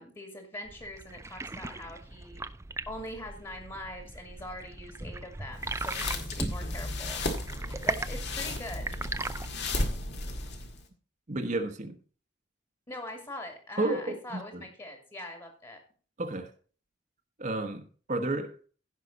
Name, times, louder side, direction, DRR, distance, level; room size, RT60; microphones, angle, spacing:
voice 1, 0.0-2.4 2.9-7.3 7.6-8.9 12.9-15.8, left 1 dB, 25° left, 2.1 m, -43 dB
sound 1, 0.7-9.5, right 3 dB, 15° right, 0.4 m, -38 dB
sound 2, 5.6-10.8, left 2 dB, 60° left, 1.9 m, -34 dB
voice 2, 11.3-12.0 13.8-14.6 16.2-16.5 17.4-18.6, right 2 dB, 40° right, 1.1 m, -32 dB
16.0 x 5.8 x 4.0 m
head